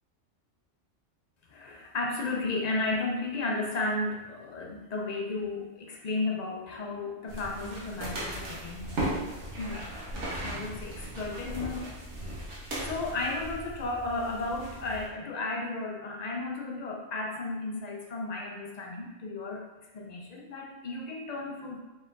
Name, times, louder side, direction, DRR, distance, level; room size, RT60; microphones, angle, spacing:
voice 1, 1.5-8.9 9.6-9.9 10.4-19.6 19.9-21.8, left 2 dB, 50° left, 0 dB, 0.5 m, -34 dB
sound 1, 7.3-15.1, right 1 dB, 70° right, 1.3 m, -37 dB
4.1 x 3.9 x 2.5 m, 1.1 s
omnidirectional pair, 1.2 m